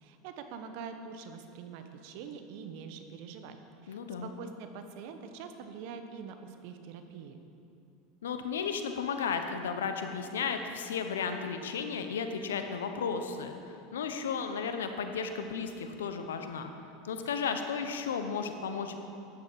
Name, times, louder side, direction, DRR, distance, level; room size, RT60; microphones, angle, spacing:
voice 1, 0.0-3.6 3.8-7.4, right 6 dB, 65° right, 7 dB, 1.0 m, -44 dB
voice 2, 3.9-4.3 8.2-16.7 17.0-19.0, left 6 dB, 90° left, 7 dB, 0.9 m, -34 dB
13.5 x 9.6 x 4.8 m, 2.7 s
hypercardioid pair, 100°, 0 cm